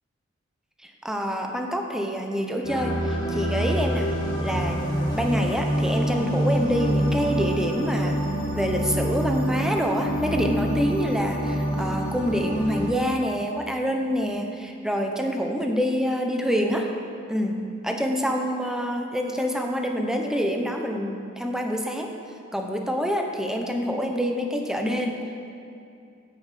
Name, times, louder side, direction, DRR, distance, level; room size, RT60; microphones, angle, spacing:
voice 1, 0.8-4.1 4.4-8.2 8.6-16.9 17.3-22.1 22.5-25.5, equal, 5° right, 2 dB, 0.8 m, -26 dB
sound 1, 2.6-12.9, equal, 25° left, 2.3 m, -26 dB
9.0 x 7.7 x 7.6 m, 2.5 s
head